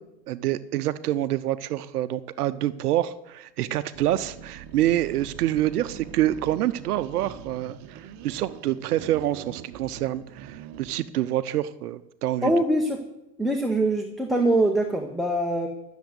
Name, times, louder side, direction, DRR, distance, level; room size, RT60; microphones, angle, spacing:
voice 1, 0.3-12.5, right 13 dB, 65° right, 14 dB, 0.7 m, -27 dB
sound 1, 3.9-11.1, right 9 dB, 35° right, 1.0 m, -43 dB
voice 2, 12.4-13.0 13.4-15.7, right 1 dB, ahead, 1 dB, 0.8 m, -23 dB
13.0 x 7.1 x 8.0 m, 0.89 s
hypercardioid pair, 115°, 50 cm